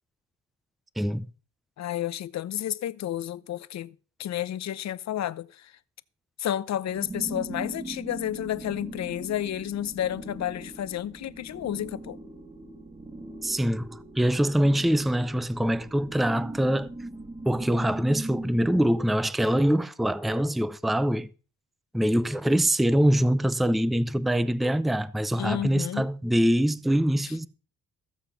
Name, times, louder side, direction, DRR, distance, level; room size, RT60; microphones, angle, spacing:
voice 1, 1.0-1.3 13.4-16.9 17.4-21.3 21.9-27.5, equal, ahead, 0.5 m, -24 dB
voice 2, 1.8-3.9 4.2-5.7 6.4-12.2 25.4-26.1, left 11 dB, 60° left, 0.8 m, -31 dB
sound 1, 6.9-18.9, right 2 dB, 20° right, 1.6 m, -40 dB
15.0 x 7.3 x 5.8 m
cardioid pair, 105°, 30 cm